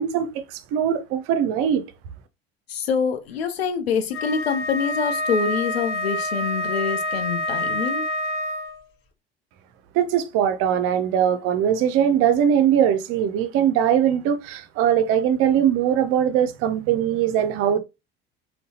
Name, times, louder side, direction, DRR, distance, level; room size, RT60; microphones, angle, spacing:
voice 1, 0.0-1.8 9.9-17.8, right 9 dB, 45° right, 0.6 m, -21 dB
voice 2, 2.7-8.1, left 6 dB, 75° left, 0.6 m, -25 dB
Wind instrument woodwind instrument, 4.1-8.8, left 1 dB, 40° left, 0.8 m, -27 dB
3.8 x 2.2 x 2.8 m
figure-of-eight pair, 65°, 31 cm